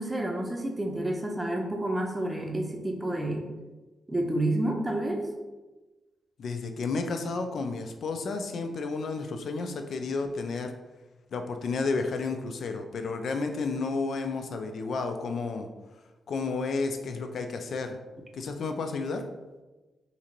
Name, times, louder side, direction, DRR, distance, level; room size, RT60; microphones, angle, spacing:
voice 1, 0.0-3.5 4.1-5.3, right 1 dB, 20° right, 2 dB, 0.6 m, -29 dB
voice 2, 6.4-10.7 11.3-15.7 16.3-18.0 18.3-19.2, left 4 dB, 65° left, 6 dB, 0.3 m, -31 dB
2.8 x 2.6 x 2.5 m, 1.2 s
hypercardioid pair, 40°, 0 cm